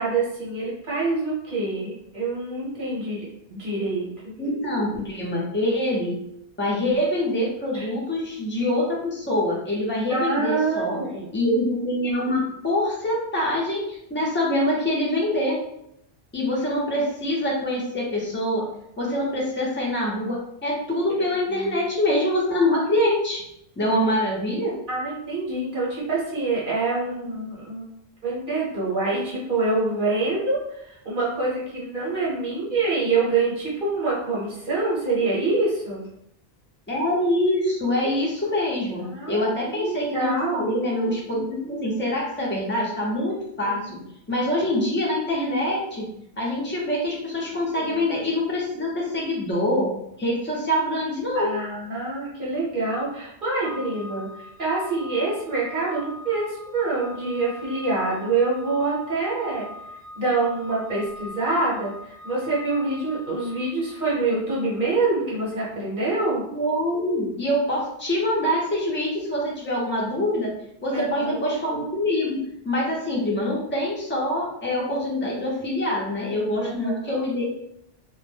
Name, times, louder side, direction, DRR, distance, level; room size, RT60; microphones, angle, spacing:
voice 1, 0.0-4.3 7.7-7.9 10.1-11.4 21.5-21.7 24.9-27.9 28.2-36.1 39.0-40.6 43.6-44.0 47.7-48.0 51.3-59.7 60.1-66.4 70.9-71.4 76.6-77.2, right 3 dB, 55° right, -6 dB, 1.0 m, -26 dB
voice 2, 4.4-6.2 6.6-11.0 11.3-15.6 16.3-18.7 19.0-23.4 23.8-24.7 36.9-43.8 44.3-46.1 46.4-49.9 50.2-51.5 66.5-70.5 70.8-72.4 72.6-77.4, left 1 dB, 15° left, -4 dB, 0.5 m, -25 dB
Organ, 53.6-64.3, left 2 dB, 80° right, 0.9 m, -42 dB
2.2 x 2.1 x 3.2 m, 0.77 s
omnidirectional pair, 1.1 m